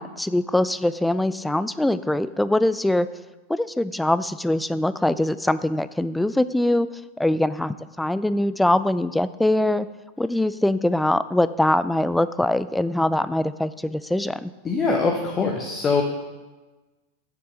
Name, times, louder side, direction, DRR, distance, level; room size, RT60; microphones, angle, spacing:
voice 1, 0.0-3.1 3.5-6.9 7.2-9.9 10.2-14.5, left 1 dB, 5° left, 14 dB, 0.3 m, -22 dB
voice 2, 14.6-16.0, left 4 dB, 20° left, 1 dB, 1.0 m, -22 dB
6.9 x 6.8 x 6.3 m, 1.2 s
figure-of-eight pair, 90°, 0 cm